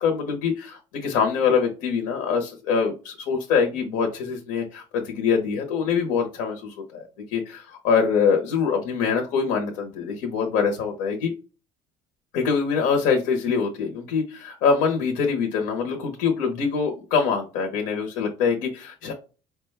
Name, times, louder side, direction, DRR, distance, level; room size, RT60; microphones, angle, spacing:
voice 1, 0.0-7.0 7.3-11.3 12.3-19.1, left 6 dB, 80° left, 3 dB, 0.9 m, -24 dB
4.8 x 2.2 x 3.2 m, 0.33 s
cardioid pair, 130°, 14 cm